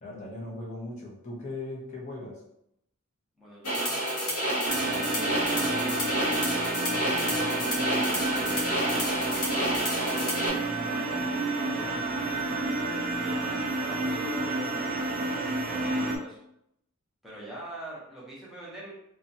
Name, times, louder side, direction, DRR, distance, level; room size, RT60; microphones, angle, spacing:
voice 1, 0.0-2.4, left 2 dB, 35° left, -5 dB, 0.7 m, -38 dB
voice 2, 3.4-4.5 5.0-9.0 9.3-12.4 13.2-15.4 15.7-16.4 17.2-18.9, right 1 dB, ahead, -8 dB, 0.7 m, -44 dB
sound 1, 3.6-10.5, equal, 80° left, 0.9 m, -29 dB
sound 2, 4.7-16.2, right 2 dB, 40° right, 0.3 m, -30 dB
2.8 x 2.2 x 2.6 m, 0.78 s
head